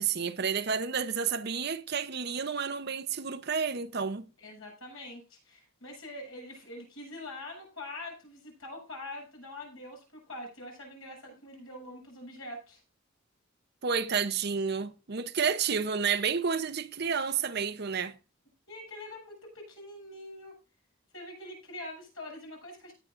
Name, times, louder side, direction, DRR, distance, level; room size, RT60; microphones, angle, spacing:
voice 1, 0.0-4.3 13.8-18.1, right 6 dB, 50° right, 0.7 m, -30 dB
voice 2, 4.4-12.8 18.7-20.5 21.1-22.9, left 1 dB, 70° left, 7.3 m, -44 dB
18.0 x 9.0 x 2.5 m
head